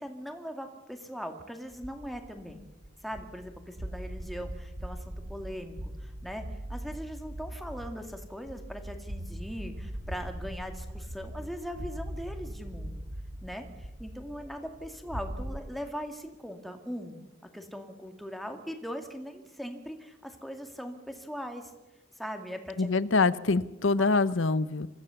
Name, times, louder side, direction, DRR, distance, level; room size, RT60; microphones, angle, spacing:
voice 1, 0.0-2.6 3.0-6.4 6.7-13.0 13.4-17.2 17.5-21.7 22.2-22.9 24.0-24.1, equal, ahead, 5 dB, 2.1 m, -40 dB
sound 1, 1.7-15.6, right 1 dB, 85° right, 1.7 m, -41 dB
voice 2, 22.8-24.9, left 3 dB, 90° left, 17 dB, 0.8 m, -25 dB
25.0 x 15.5 x 7.0 m, 1.1 s
head